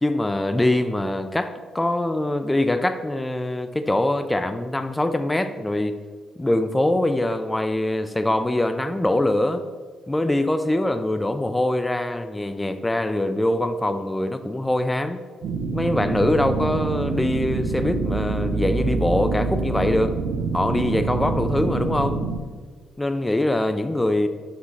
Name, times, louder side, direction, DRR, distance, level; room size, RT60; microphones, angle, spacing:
voice 1, 0.0-6.0 6.4-9.6 10.1-15.2 15.7-20.2 20.5-22.2 23.0-24.3, left 1 dB, 10° left, 9 dB, 0.3 m, -23 dB
sound 1, 15.4-22.4, right 4 dB, 70° right, 0.7 m, -26 dB
6.0 x 5.5 x 3.1 m, 1.5 s
cardioid pair, 90°, 0 cm